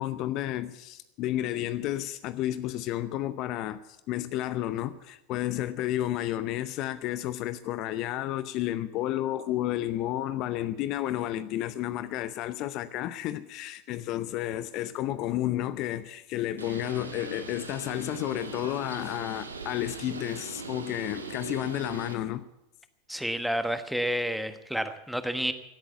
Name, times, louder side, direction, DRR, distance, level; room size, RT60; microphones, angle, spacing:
voice 1, 0.0-3.8 4.1-22.4, left 13 dB, 45° left, 0.6 m, -31 dB
Bird, 16.6-22.1, right 3 dB, 80° right, 1.7 m, -40 dB
voice 2, 23.1-25.5, equal, ahead, 1.2 m, -30 dB
17.0 x 8.8 x 8.3 m
figure-of-eight pair, 90°, 0 cm